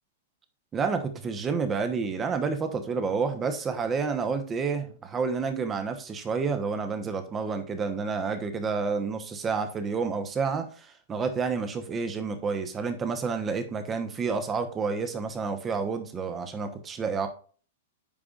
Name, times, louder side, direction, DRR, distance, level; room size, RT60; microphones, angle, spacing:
voice 1, 0.7-17.3, right 5 dB, 20° right, 8 dB, 1.1 m, -29 dB
8.6 x 4.9 x 2.5 m, 0.41 s
figure-of-eight pair, 105°, 0 cm